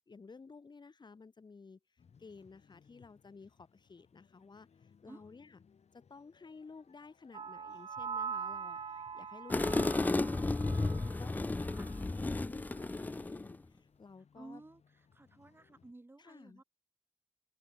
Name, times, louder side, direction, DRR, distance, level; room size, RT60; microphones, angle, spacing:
voice 1, 0.0-1.8 2.2-4.7 5.0-5.5 5.9-8.8 9.1-10.5 10.9-13.6 14.0-14.6 16.2-16.6, left 4 dB, 35° left, 3.9 m, -54 dB
sound 1, 2.0-15.9, left 6 dB, 60° left, 6.2 m, -67 dB
sound 2, 7.3-11.4 11.7-12.0, right 6 dB, 45° right, 0.7 m, -42 dB
sound 3, 9.5-13.6, left 2 dB, 15° left, 0.3 m, -33 dB
voice 2, 11.6-11.9 14.3-16.6, right 2 dB, 20° right, 6.8 m, -54 dB
wide cardioid pair, 160°, 12 cm